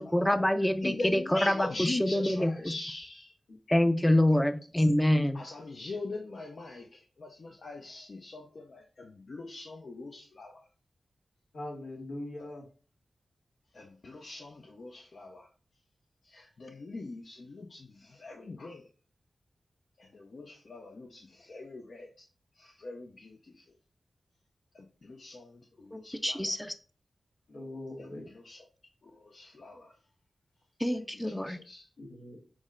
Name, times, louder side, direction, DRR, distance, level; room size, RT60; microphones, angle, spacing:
voice 1, 0.0-1.5 1.8-2.5 3.7-5.4 25.9-26.7 30.8-31.6, left 1 dB, 10° left, 9 dB, 0.5 m, -26 dB
voice 2, 0.8-3.3 5.3-10.7 12.4-12.5 13.7-15.5 16.2-18.9 20.0-22.3 22.5-23.7 24.7-26.6 28.0-28.6 29.0-30.0 30.9-31.9, left 2 dB, 65° left, 2 dB, 0.6 m, -42 dB
voice 3, 2.4-2.7 3.5-3.6 4.3-4.4 4.8-4.9 11.5-12.7 27.5-28.3 32.0-32.4, left 1 dB, 90° left, -1 dB, 1.4 m, -42 dB
6.1 x 2.1 x 3.7 m, 0.38 s
cardioid pair, 40°, 0 cm